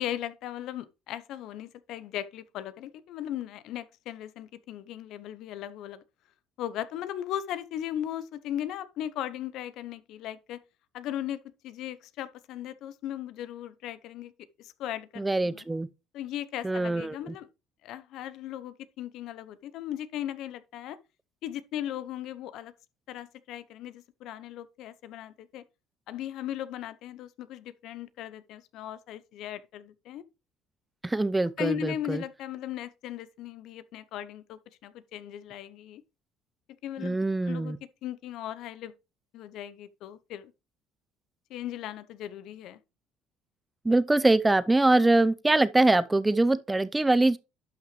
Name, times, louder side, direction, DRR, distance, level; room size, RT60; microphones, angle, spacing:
voice 1, 0.0-6.0 6.6-10.6 10.9-14.3 14.6-15.6 16.1-17.5 17.8-21.0 21.4-22.7 23.1-25.6 26.1-30.2 31.6-36.0 36.8-37.2 37.4-38.9 39.3-40.5 41.5-42.8, left 11 dB, 65° left, 0.8 m, -37 dB
voice 2, 15.2-15.9 16.6-17.2 31.0-32.2 37.0-37.8 43.8-47.4, right 2 dB, 15° right, 0.7 m, -23 dB
11.5 x 5.8 x 3.2 m
hypercardioid pair, 65°, 0 cm